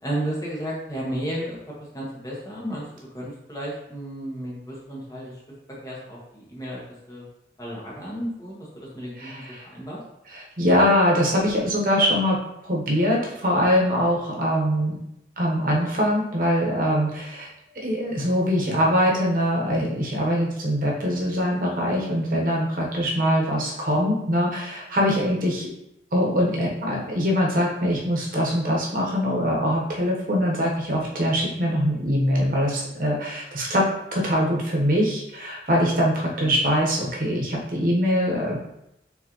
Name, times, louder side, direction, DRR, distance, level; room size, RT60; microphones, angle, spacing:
voice 1, 0.0-1.6 1.9-2.9 3.1-5.3 5.8-6.8 7.1-7.2 7.6-9.4 9.7-10.0 36.4-36.6, right 1 dB, 20° left, -5 dB, 1.3 m, -33 dB
voice 2, 9.2-9.6 10.3-12.4 12.6-15.0 15.4-17.5 17.8-25.7 26.1-38.6, equal, 50° right, -2 dB, 1.1 m, -23 dB
4.4 x 3.8 x 3.0 m, 0.82 s
head